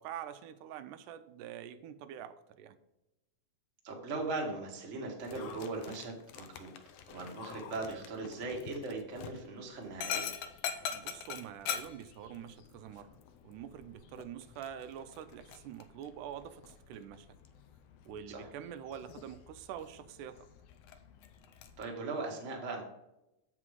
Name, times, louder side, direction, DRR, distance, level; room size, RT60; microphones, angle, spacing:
voice 1, 0.0-2.8 10.9-13.2 13.4-17.3 18.1-20.5, right 9 dB, 90° right, 11 dB, 2.1 m, -45 dB
voice 2, 3.8-6.7 7.1-10.3 18.3-18.4 21.8-22.8, right 3 dB, 35° right, 0 dB, 1.2 m, -39 dB
Dog, 5.2-21.8, left 8 dB, 75° left, 1.5 m, -45 dB
7.6 x 5.8 x 4.8 m, 0.93 s
omnidirectional pair, 3.5 m